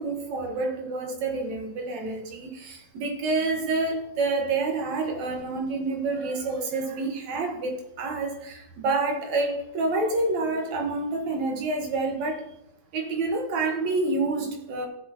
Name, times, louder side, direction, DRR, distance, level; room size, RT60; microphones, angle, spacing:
voice 1, 0.0-12.5 12.9-14.9, right 3 dB, 70° right, 3 dB, 2.6 m, -28 dB
14.5 x 6.5 x 2.9 m, 0.83 s
omnidirectional pair, 3.4 m